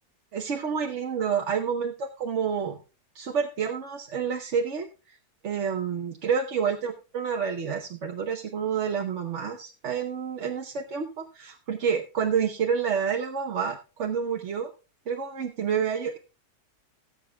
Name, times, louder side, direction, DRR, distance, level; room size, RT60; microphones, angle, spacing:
voice 1, 0.3-2.8 3.1-5.2 5.4-14.7 15.1-16.2, right 7 dB, 55° right, 3 dB, 1.2 m, -29 dB
18.5 x 8.1 x 2.3 m, 0.31 s
omnidirectional pair, 1.6 m